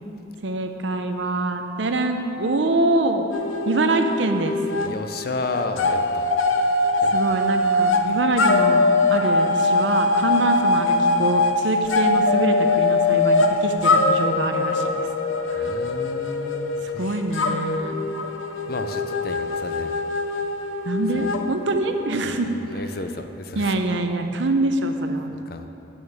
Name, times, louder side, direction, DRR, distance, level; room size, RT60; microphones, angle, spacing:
voice 1, 0.4-3.3 3.7-4.5 7.1-15.0 15.5-15.6 17.0-18.0 20.8-22.6 23.6-25.3, right 2 dB, 70° right, 6 dB, 0.7 m, -24 dB
sound 1, 3.3-4.9 5.2-22.3, left 2 dB, 85° left, 0.7 m, -22 dB
voice 2, 4.8-6.3 7.0-7.4 15.6-17.1 18.7-20.0 21.2-21.3 22.2-23.8 25.5-25.7, left 3 dB, 50° left, 7 dB, 0.5 m, -33 dB
8.8 x 6.4 x 7.3 m, 3.0 s
head